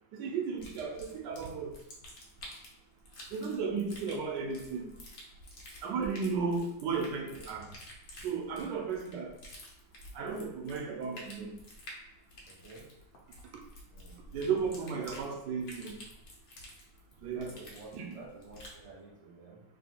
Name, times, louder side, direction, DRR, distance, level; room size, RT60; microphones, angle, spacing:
voice 1, 0.1-1.7 3.3-4.9 5.8-7.7 8.2-9.3 10.1-11.5 13.5-13.6 14.3-16.0 17.2-17.5 17.9-18.2, right 5 dB, 75° right, 2 dB, 1.2 m, -34 dB
sound 1, 0.6-18.8, left 1 dB, 60° left, 1.4 m, -51 dB
voice 2, 12.5-12.9 13.9-14.1 14.8-15.1 17.3-19.6, right 3 dB, 50° right, -4 dB, 0.4 m, -51 dB
3.5 x 2.7 x 4.3 m, 0.83 s
omnidirectional pair, 2.1 m